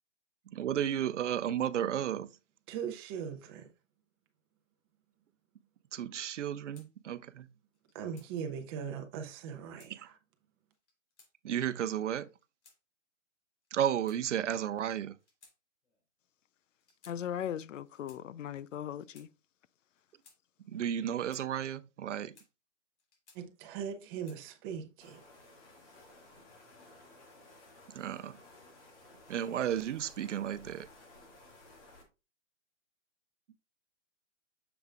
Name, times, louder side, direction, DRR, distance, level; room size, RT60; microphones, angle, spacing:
voice 1, 0.5-2.3 5.9-7.5 9.9-10.0 11.4-12.3 13.7-15.1 20.7-22.3 27.9-28.4 29.3-30.9, right 10 dB, 70° right, 0.7 m, -33 dB
voice 2, 2.7-3.7 7.9-10.2 23.3-25.2, right 7 dB, 20° right, 0.7 m, -40 dB
sound 1, 6.7-6.9 7.7-8.3 9.3-9.9 10.7-11.3 12.2-12.8 13.6-14.6 15.2-15.6 15.8-16.0 16.8-17.2 17.8-18.2 18.9-19.3 20.0-20.4 21.1-21.5 22.1-22.5 23.0-23.6 24.1-24.4, left 4 dB, 65° left, 3.6 m, -63 dB
voice 3, 17.0-19.3, left 10 dB, 80° left, 0.6 m, -38 dB
sound 2, 25.0-32.0, left 2 dB, 30° left, 2.0 m, -56 dB
7.1 x 6.8 x 2.4 m
hypercardioid pair, 150°, 37 cm